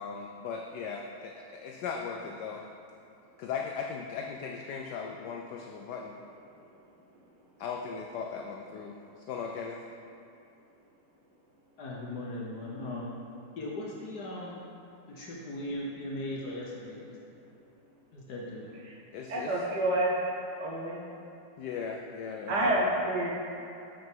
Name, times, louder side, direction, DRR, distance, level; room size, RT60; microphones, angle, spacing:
voice 1, 0.0-2.6 3.4-6.2 7.6-9.8 19.1-19.5 21.6-22.8, left 6 dB, 85° left, 1 dB, 0.9 m, -38 dB
voice 2, 11.8-13.1 13.6-14.6 15.1-17.1 18.1-18.7, left 1 dB, 60° left, -3 dB, 1.2 m, -38 dB
voice 3, 19.3-20.2 20.6-21.0 22.5-23.3, right 1 dB, 60° right, -3 dB, 1.4 m, -28 dB
7.1 x 6.2 x 4.5 m, 2.7 s
omnidirectional pair, 2.4 m